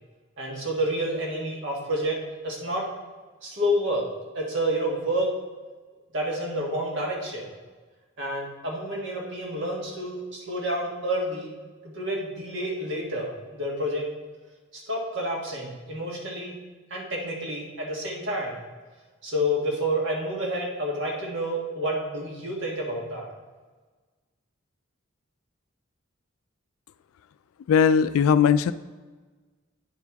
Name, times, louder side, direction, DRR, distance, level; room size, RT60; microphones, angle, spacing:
voice 1, 0.4-2.2 2.4-2.8 3.4-4.0 4.3-5.3 6.1-7.5 8.2-11.5 11.9-14.0 14.7-16.6 16.9-18.6 19.2-23.3, equal, 60° right, -2 dB, 1.6 m, -29 dB
voice 2, 27.7-28.7, left 7 dB, 85° left, 14 dB, 0.3 m, -19 dB
9.3 x 4.6 x 3.5 m, 1.3 s
head